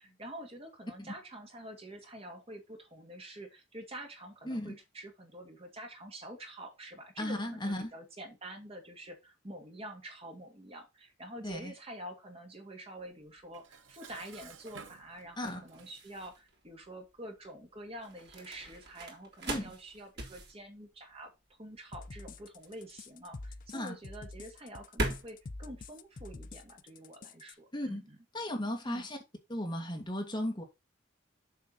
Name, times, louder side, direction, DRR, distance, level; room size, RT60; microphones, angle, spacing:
voice 1, 0.0-21.3 21.6-28.2 28.8-29.1, right 1 dB, 30° right, 2.4 m, -47 dB
voice 2, 4.5-4.8 7.2-7.9 11.4-11.7 15.4-15.6 19.5-19.7 23.7-24.0 27.7-28.0 28.3-29.2 29.5-30.6, left 1 dB, 25° left, 2.2 m, -35 dB
sound 1, 13.0-26.8, right 1 dB, 60° right, 3.6 m, -42 dB
Dishes pots and pans, 13.5-16.0, right 5 dB, 80° right, 1.2 m, -52 dB
sound 2, 21.9-27.5, left 3 dB, 45° left, 0.6 m, -47 dB
7.4 x 6.6 x 4.1 m
head